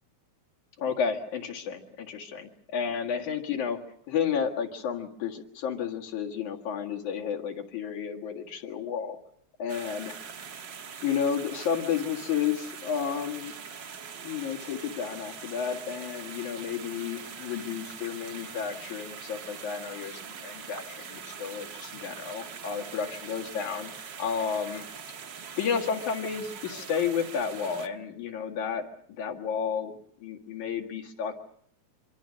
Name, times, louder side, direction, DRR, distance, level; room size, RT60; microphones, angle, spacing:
voice 1, 0.8-3.8 4.1-9.2 9.6-10.1 11.0-13.5 14.2-23.9 24.2-24.8 25.6-29.9 30.2-31.4, left 7 dB, 80° left, 1 dB, 3.3 m, -32 dB
sound 1, 9.7-27.9, right 6 dB, 50° right, 1.6 m, -43 dB
26.0 x 24.5 x 6.4 m, 0.67 s
omnidirectional pair, 3.4 m